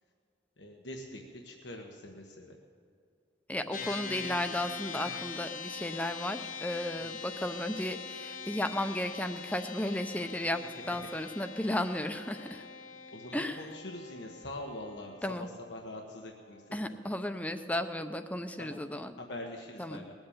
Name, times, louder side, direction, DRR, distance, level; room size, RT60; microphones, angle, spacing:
voice 1, 0.6-2.6 7.0-7.1 10.9-11.0 13.1-16.9 18.6-18.7 19.2-20.1, left 1 dB, 90° left, 1 dB, 1.2 m, -44 dB
voice 2, 3.5-12.6 13.3-13.7 15.2-15.5 16.7-19.2 19.8-20.0, left 1 dB, 10° left, 8 dB, 0.6 m, -34 dB
sound 1, 3.7-17.3, left 5 dB, 45° left, 0.8 m, -43 dB
20.0 x 7.8 x 8.7 m, 2.2 s
head